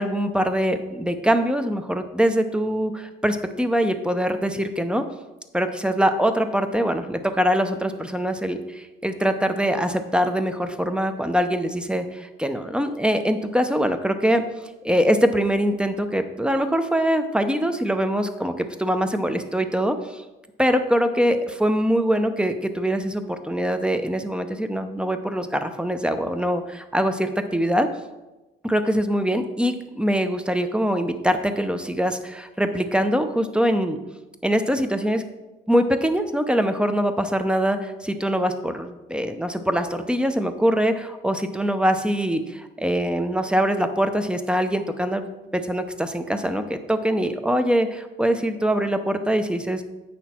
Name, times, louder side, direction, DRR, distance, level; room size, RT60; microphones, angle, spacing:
voice 1, 0.0-5.0 5.5-14.4 14.8-20.2 20.6-27.9 28.6-34.0 34.4-35.2 35.7-45.2 45.5-49.8, equal, 5° right, 7 dB, 0.7 m, -23 dB
8.2 x 6.1 x 4.4 m, 1.1 s
cardioid pair, 90°, 20 cm